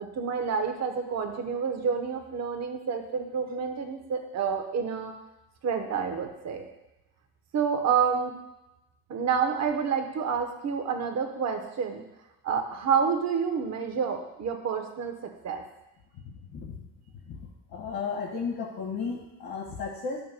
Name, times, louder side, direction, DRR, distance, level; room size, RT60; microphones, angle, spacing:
voice 1, 0.0-5.1 5.6-6.7 7.5-8.3 9.1-12.0 12.4-15.6, right 6 dB, 40° right, 5 dB, 0.9 m, -28 dB
voice 2, 16.2-16.8 17.3-17.4 17.7-20.2, left 5 dB, 60° left, -5 dB, 1.7 m, -34 dB
11.0 x 6.9 x 2.2 m, 0.94 s
cardioid pair, 150°, 39 cm